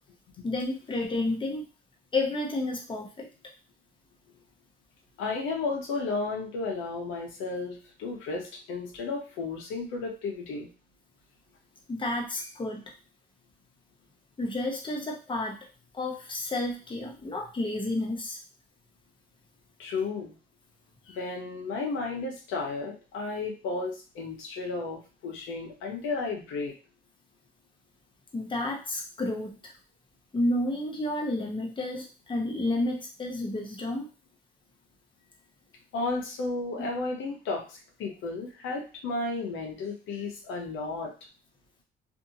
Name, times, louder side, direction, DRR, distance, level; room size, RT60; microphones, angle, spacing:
voice 1, 0.4-1.6 2.1-3.3 11.9-12.9 14.4-15.7 15.9-18.4 28.3-29.7 30.3-34.1 36.8-36.9, left 2 dB, 25° left, 0 dB, 0.9 m, -31 dB
voice 2, 5.2-10.7 19.8-20.3 21.1-26.7 35.9-41.1, left 3 dB, 90° left, 0 dB, 0.8 m, -33 dB
2.7 x 2.7 x 2.7 m, 0.33 s
cardioid pair, 90°, 20 cm